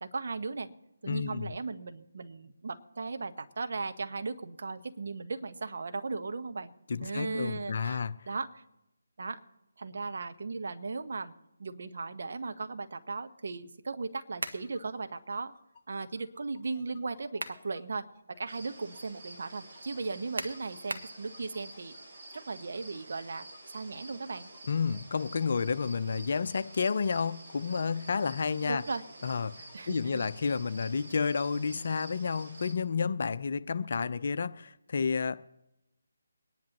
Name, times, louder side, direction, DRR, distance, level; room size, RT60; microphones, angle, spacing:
voice 1, 0.0-0.7 1.0-6.7 7.0-8.6 9.2-9.4 9.8-11.3 11.6-15.5 15.9-21.9 22.3-23.5 23.7-24.5 28.5-29.0 29.7-30.3, right 4 dB, 60° right, 9 dB, 1.1 m, -37 dB
voice 2, 1.0-1.5 6.9-8.1 24.7-28.8 29.2-35.4, left 5 dB, 55° left, 13 dB, 0.6 m, -31 dB
sound 1, 14.4-14.7 17.1-17.7 18.2-18.3 20.4-21.2, right 2 dB, 80° right, 1.2 m, -37 dB
sound 2, 14.5-26.6 26.9-29.9, left 4 dB, 10° left, 4.2 m, -60 dB
sound 3, 18.5-32.7, right 2 dB, 40° right, 3.4 m, -49 dB
24.0 x 10.5 x 3.0 m, 0.89 s
figure-of-eight pair, 155°, 0 cm